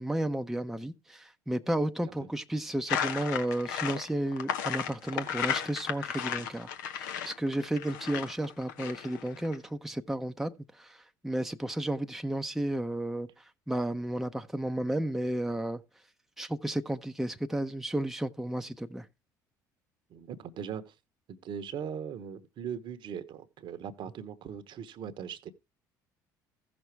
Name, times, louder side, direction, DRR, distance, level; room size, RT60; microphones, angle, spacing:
voice 1, 0.0-13.3 13.7-15.8 16.4-19.1, right 1 dB, 5° right, 0.7 m, -33 dB
sound 1, 2.9-9.5, left 9 dB, 75° left, 1.0 m, -34 dB
voice 2, 20.1-20.9 21.3-25.5, right 8 dB, 55° right, 1.0 m, -40 dB
15.0 x 6.1 x 3.4 m
hypercardioid pair, 60°, 10 cm